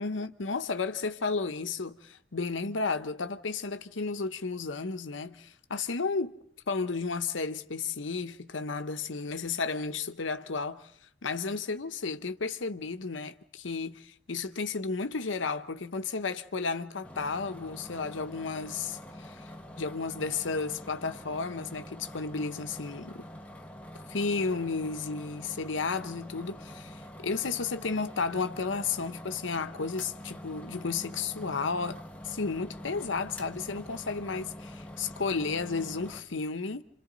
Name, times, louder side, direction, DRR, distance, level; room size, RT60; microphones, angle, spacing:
voice 1, 0.0-6.3 6.7-10.9 11.2-19.5 19.8-23.2 24.1-32.0 32.2-36.8, left 4 dB, 90° left, 0.9 m, -33 dB
sound 1, 17.0-36.2, equal, 5° left, 0.9 m, -45 dB
28.5 x 27.0 x 4.0 m
head